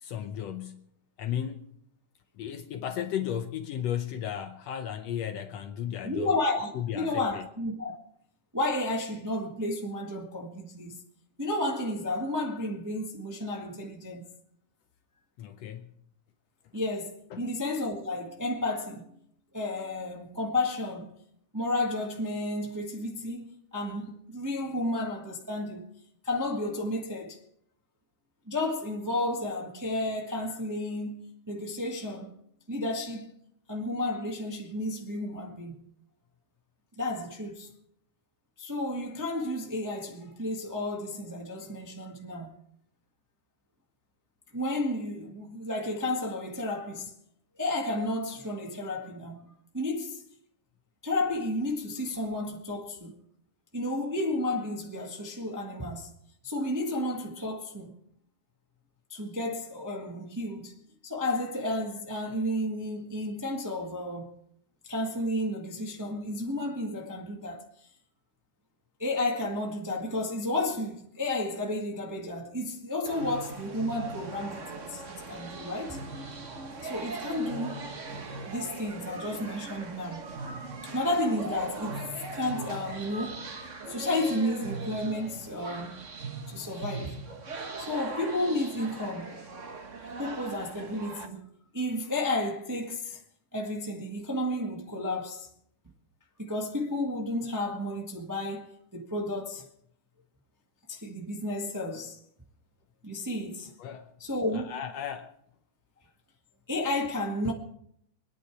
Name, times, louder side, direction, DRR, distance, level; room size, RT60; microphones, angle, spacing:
voice 1, 0.0-0.9 1.2-1.7 2.4-6.3 6.7-7.5 15.4-15.9 17.3-17.5 103.8-104.1 104.5-105.4, left 10 dB, 70° left, 1.7 m, -35 dB
voice 2, 6.0-8.0 8.5-11.0 11.4-14.2 16.7-19.1 19.5-21.1 21.5-25.8 26.2-27.4 28.5-32.3 32.7-33.3 33.7-35.8 37.0-37.7 38.6-42.6 44.5-47.1 47.6-49.5 49.7-50.2 51.0-53.1 53.7-56.1 56.4-57.9 59.1-60.7 61.0-64.3 64.8-67.7 69.0-76.0 76.8-77.8 78.5-80.3 80.8-82.0 82.3-83.4 83.9-86.0 86.5-87.2 87.8-89.4 90.2-91.5 91.7-93.2 93.5-95.5 96.4-99.6 100.9-102.2 103.0-103.7 104.2-104.7 106.7-107.5, left 1 dB, 10° right, 0.9 m, -32 dB
sound 1, 73.0-91.3, right 3 dB, 85° right, 0.6 m, -40 dB
25.0 x 10.0 x 4.8 m
omnidirectional pair, 3.5 m